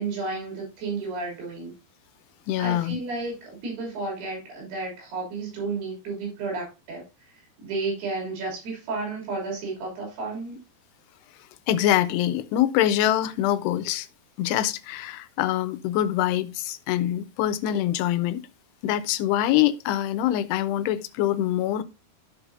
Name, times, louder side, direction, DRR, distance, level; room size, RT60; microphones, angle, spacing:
voice 1, 0.0-1.7 2.6-7.3 7.6-10.6, right 3 dB, 75° right, 5.0 m, -32 dB
voice 2, 2.5-3.0 11.7-14.1 14.4-18.4 18.8-21.8, left 12 dB, 90° left, 2.7 m, -24 dB
13.5 x 4.8 x 2.6 m
omnidirectional pair, 4.7 m